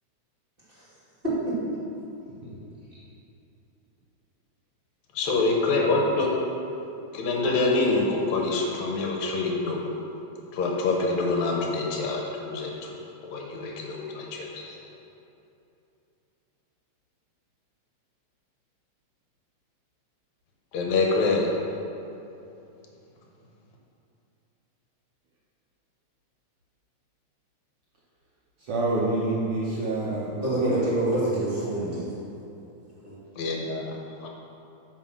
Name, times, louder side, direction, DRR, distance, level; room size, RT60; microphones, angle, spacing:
voice 1, 5.2-6.3 7.1-9.8 10.5-13.0 13.2-14.8 20.7-21.5 33.4-34.3, left 3 dB, 75° left, 0 dB, 2.2 m, -26 dB
voice 2, 28.6-30.9 34.1-34.2, right 2 dB, 65° right, -5 dB, 1.5 m, -28 dB
voice 3, 30.4-32.1 33.0-33.2, right 1 dB, 20° right, -9 dB, 1.9 m, -26 dB
9.8 x 4.4 x 6.3 m, 2.8 s
omnidirectional pair, 3.4 m